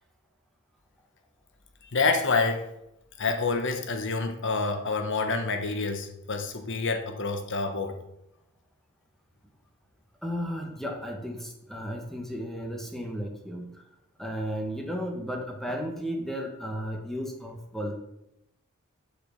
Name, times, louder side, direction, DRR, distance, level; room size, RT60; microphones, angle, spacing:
voice 1, 1.9-2.7 3.2-8.0, left 3 dB, 60° left, 5 dB, 1.3 m, -27 dB
voice 2, 10.2-13.8 14.2-18.0, equal, ahead, 2 dB, 1.5 m, -34 dB
8.3 x 6.1 x 7.4 m, 0.84 s
head